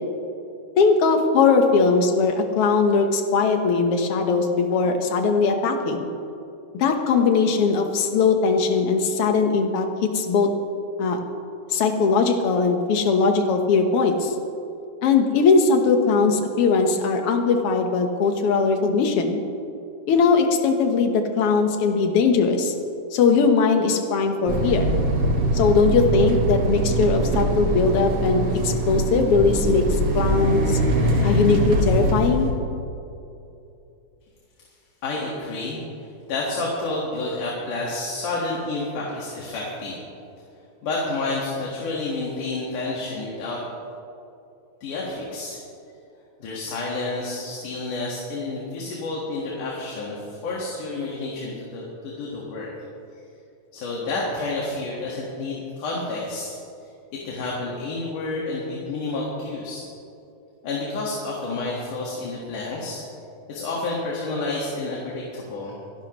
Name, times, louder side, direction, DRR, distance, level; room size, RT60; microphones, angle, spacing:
voice 1, 0.8-6.1 6.8-10.5 11.0-11.2 11.7-14.3 15.0-19.4 20.1-22.7 23.1-24.9 25.5-29.8 30.1-30.8 31.2-32.5, left 4 dB, 60° left, 5 dB, 1.7 m, -20 dB
sound 1, 24.5-32.5, right 1 dB, 50° right, 2.2 m, -22 dB
voice 2, 35.0-40.0 40.8-43.6 44.8-45.6 46.4-52.7 53.7-56.6 57.1-59.9 60.6-63.0 63.5-65.8, left 2 dB, 80° left, -4 dB, 3.3 m, -30 dB
26.5 x 11.5 x 3.1 m, 2.7 s
omnidirectional pair, 3.5 m